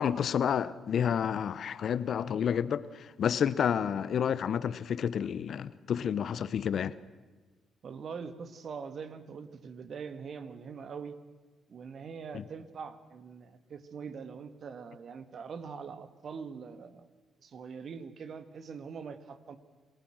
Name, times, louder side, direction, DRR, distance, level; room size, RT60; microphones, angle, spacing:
voice 1, 0.0-6.9 12.3-12.4, left 8 dB, 60° left, 0.8 m, -30 dB
voice 2, 7.8-11.2 11.7-17.1 17.4-19.6, right 6 dB, 55° right, 1.9 m, -43 dB
28.0 x 18.5 x 6.3 m
hypercardioid pair, 45°, 0 cm